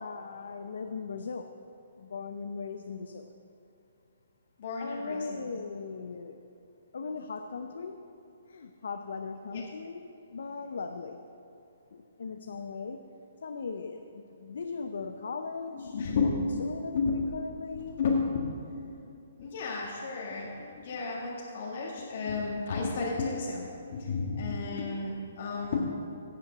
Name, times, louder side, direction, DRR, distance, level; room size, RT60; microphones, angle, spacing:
voice 1, 0.0-1.5 2.0-3.3 4.8-6.4 6.9-8.1 8.5-11.2 11.9-13.0 13.4-18.0, left 4 dB, 75° left, 7 dB, 0.6 m, -39 dB
voice 2, 4.6-5.5 9.5-9.6 15.7-17.5 17.8-18.8 19.4-25.8, left 4 dB, 55° left, -3 dB, 1.7 m, -32 dB
17.0 x 5.7 x 6.1 m, 2.8 s
hypercardioid pair, 145°, 0 cm